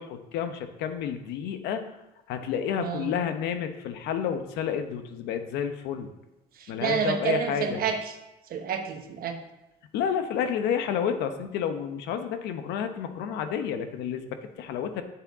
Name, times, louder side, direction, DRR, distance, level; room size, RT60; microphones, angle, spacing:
voice 1, 0.0-1.8 2.3-6.1 6.7-7.8 9.9-15.0, left 8 dB, 90° left, 8 dB, 1.0 m, -30 dB
voice 2, 2.8-3.1 6.6-8.1 8.5-9.4, right 6 dB, 60° right, 5 dB, 1.2 m, -29 dB
8.8 x 8.2 x 3.6 m, 0.95 s
cardioid pair, 110°, 17 cm